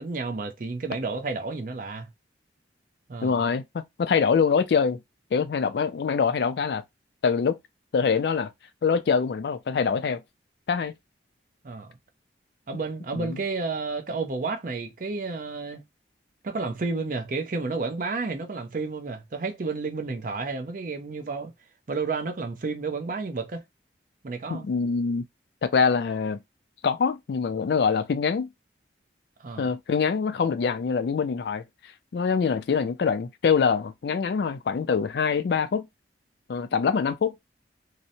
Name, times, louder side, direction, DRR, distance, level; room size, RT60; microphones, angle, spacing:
voice 1, 0.0-2.1 3.1-3.4 11.6-11.9 12.7-15.8 16.4-21.5 21.9-23.6 24.2-24.6 29.4-29.7, right 4 dB, 45° right, 0.5 m, -31 dB
voice 2, 3.2-5.0 5.3-6.8 7.2-7.6 7.9-8.5 8.8-10.2 10.7-10.9 13.1-13.4 24.5-25.2 25.6-26.4 26.8-28.5 29.6-31.6 32.1-35.9 36.5-37.4, left 6 dB, 60° left, 0.3 m, -24 dB
2.7 x 2.1 x 2.6 m
head